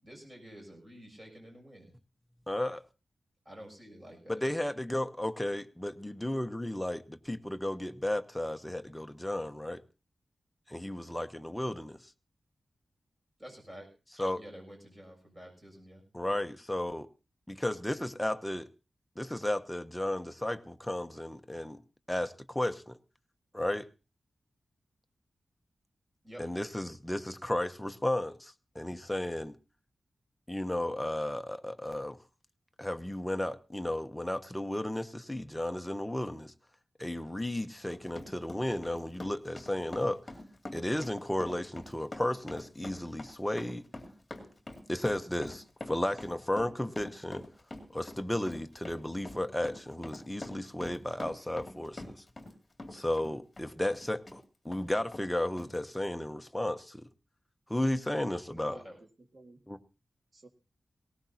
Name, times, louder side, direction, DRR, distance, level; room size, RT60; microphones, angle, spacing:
voice 1, 0.0-1.9 3.5-4.4 13.4-13.9 14.4-16.0 26.2-26.4 58.5-59.0, equal, 20° right, 6.9 m, -49 dB
voice 2, 2.5-2.8 4.3-9.8 10.7-12.0 14.2-14.4 16.1-17.1 17.5-18.7 19.2-21.8 22.1-23.0 23.5-23.9 26.4-29.6 30.5-32.2 32.8-36.5 37.0-40.2 40.7-43.8 44.9-47.4 47.9-52.2 52.9-57.1 57.7-58.8 59.7-59.8, left 1 dB, 5° left, 0.8 m, -34 dB
Run, 37.7-52.5 52.8-54.4 54.7-54.8 55.1-55.3 55.6-55.7, left 1 dB, 25° left, 2.5 m, -45 dB
voice 3, 46.3-47.0 58.7-59.6 60.3-60.5, right 2 dB, 40° right, 1.9 m, -56 dB
19.0 x 17.5 x 2.8 m
wide cardioid pair, 145°, 0 cm